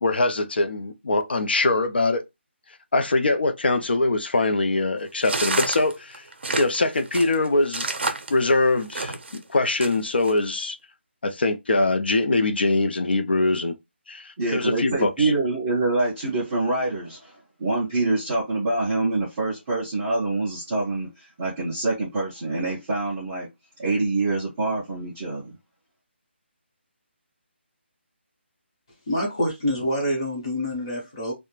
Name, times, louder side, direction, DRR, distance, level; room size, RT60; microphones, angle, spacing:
voice 1, 0.0-2.2 2.9-6.2 6.6-7.8 8.3-10.8 11.2-13.8 14.1-15.3, left 2 dB, 55° left, 0.5 m, -23 dB
sound 1, 5.2-9.4 9.8-10.3, right 3 dB, 60° right, 0.6 m, -29 dB
voice 2, 14.4-23.5 23.8-25.6, right 2 dB, 5° right, 0.4 m, -25 dB
voice 3, 29.1-31.3, equal, 25° left, 0.9 m, -26 dB
2.4 x 2.1 x 3.0 m
hypercardioid pair, 180°, 7 cm